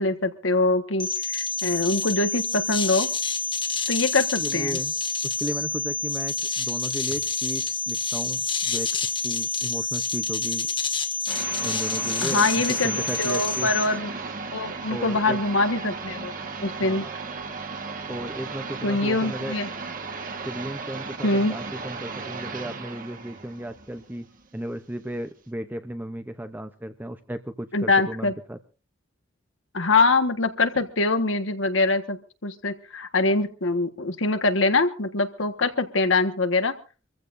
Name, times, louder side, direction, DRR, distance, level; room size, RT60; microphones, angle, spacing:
voice 1, 0.0-3.1 3.9-4.8 12.2-14.1 14.5-16.3 16.6-17.1 18.8-19.7 21.2-21.5 27.7-28.3 29.7-36.7, left 3 dB, 85° left, 8 dB, 1.5 m, -24 dB
sound 1, 1.0-13.9, left 4 dB, 25° left, 1.5 m, -28 dB
voice 2, 4.4-4.9 5.2-8.9 9.2-10.7 11.6-13.7 14.9-15.4 16.8-17.1 18.1-19.5 20.4-24.3 24.5-28.6, right 1 dB, 10° right, 8 dB, 0.6 m, -34 dB
sound 2, 11.3-24.7, right 4 dB, 45° right, 1.6 m, -35 dB
25.5 x 15.0 x 2.6 m, 0.36 s
head